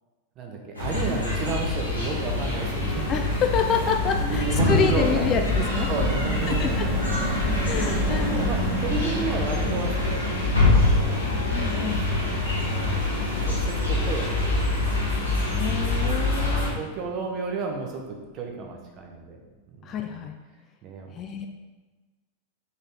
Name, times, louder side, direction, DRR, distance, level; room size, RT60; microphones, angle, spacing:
voice 1, 0.4-3.0 4.2-5.4 5.9-7.6 8.1-11.2 12.1-12.9 13.5-15.2 15.9-19.4 19.8-19.9 20.8-21.5, right 4 dB, 35° right, 1 dB, 0.8 m, -33 dB
sound 1, 0.7-16.7, left 2 dB, 85° left, 1.2 m, -25 dB
sound 2, 1.8-17.6 18.0-18.2 18.4-18.7, right 2 dB, 10° right, 1.2 m, -34 dB
voice 2, 3.1-5.9 6.5-6.9 7.6-8.4 11.5-12.0 15.5-16.8 19.8-20.3 21.1-21.5, left 7 dB, 30° left, 4 dB, 0.4 m, -28 dB
4.0 x 3.9 x 3.3 m, 1.2 s
figure-of-eight pair, 90°, 0 cm